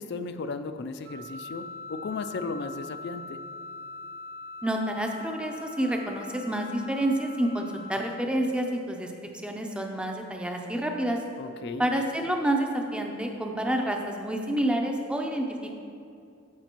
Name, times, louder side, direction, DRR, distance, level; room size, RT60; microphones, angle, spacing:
voice 1, 0.0-3.4 11.4-11.9, left 4 dB, 50° left, 10 dB, 0.3 m, -35 dB
Wind instrument woodwind instrument, 1.0-8.0, left 3 dB, 60° right, 0.7 m, -42 dB
voice 2, 4.6-11.2 11.8-15.8, right 1 dB, 5° right, 2 dB, 0.5 m, -29 dB
13.5 x 5.1 x 3.0 m, 2.5 s
head